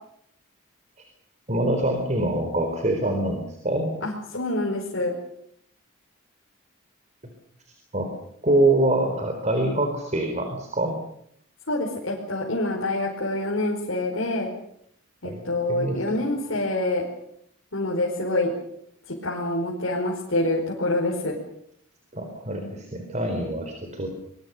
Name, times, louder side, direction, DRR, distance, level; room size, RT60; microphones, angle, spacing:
voice 1, 1.5-3.9 7.9-8.1 8.4-11.0 15.2-15.4 15.7-16.2 22.1-24.1, right 1 dB, 35° right, 5 dB, 4.1 m, -25 dB
voice 2, 4.0-5.1 11.7-14.5 15.2-17.0 17.7-18.5 19.1-21.4, left 2 dB, 70° left, -3 dB, 5.1 m, -26 dB
25.0 x 23.0 x 7.0 m, 0.70 s
head